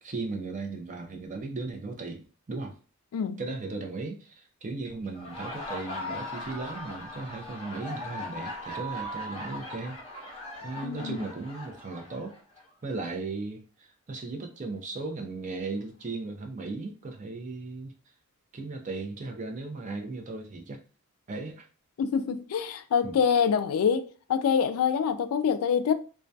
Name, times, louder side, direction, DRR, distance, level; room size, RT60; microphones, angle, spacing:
voice 1, 0.0-2.8 3.4-10.0 10.6-12.3 12.8-17.9 18.5-20.8 21.3-21.7 23.0-23.2, right 3 dB, 35° right, 0.4 m, -36 dB
Laughter, 5.0-12.7, left 1 dB, 25° left, 0.8 m, -39 dB
voice 2, 10.8-11.3 22.0-25.9, left 7 dB, 75° left, 0.3 m, -26 dB
2.2 x 2.2 x 2.5 m
head